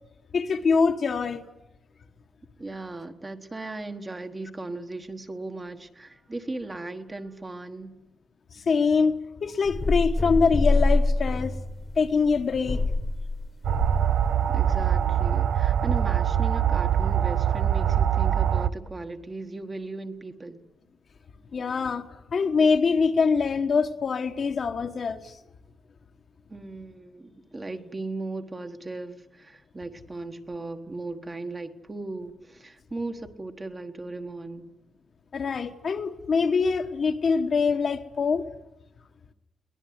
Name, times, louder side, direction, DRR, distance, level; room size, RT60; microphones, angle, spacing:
voice 1, 0.3-1.4 8.5-11.6 12.0-12.8 21.5-25.4 35.3-38.5, left 5 dB, 45° left, 1.4 m, -24 dB
voice 2, 2.6-7.9 14.5-20.6 26.5-34.7, right 2 dB, 20° right, 1.4 m, -37 dB
sound 1, 9.6-15.2, left 2 dB, 25° left, 1.5 m, -26 dB
sound 2, 13.6-18.7, right 9 dB, 80° right, 0.8 m, -23 dB
22.5 x 18.5 x 9.5 m
wide cardioid pair, 170°, 0 cm